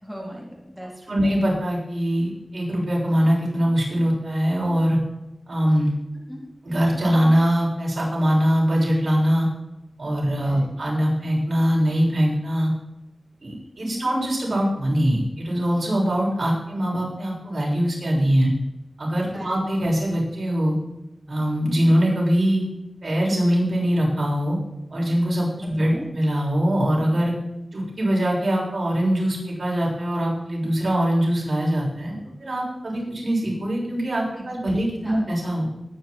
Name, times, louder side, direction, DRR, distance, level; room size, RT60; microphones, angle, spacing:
voice 1, 0.0-1.2 6.3-6.4 10.5-10.7 13.8-14.1 19.3-19.5 25.6-26.1 34.4-34.8 35.0-35.2, equal, ahead, -3 dB, 3.7 m, -38 dB
voice 2, 1.1-5.0 5.5-5.9 6.6-9.5 10.0-12.7 13.4-18.5 19.0-20.8 21.3-22.7 23.0-24.6 24.9-27.3 27.7-32.2 32.4-35.7, equal, 60° right, -4 dB, 7.0 m, -22 dB
21.0 x 9.7 x 4.6 m, 0.92 s
wide cardioid pair, 75°, 0 cm